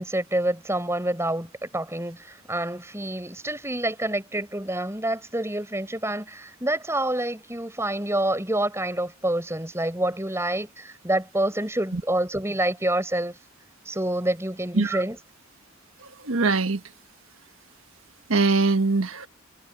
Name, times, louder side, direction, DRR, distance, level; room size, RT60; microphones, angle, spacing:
voice 1, 0.0-13.4 13.9-15.2, right 1 dB, 15° right, 4.4 m, -27 dB
voice 2, 16.0-16.8 18.3-19.3, right 3 dB, 80° right, 1.4 m, -22 dB
head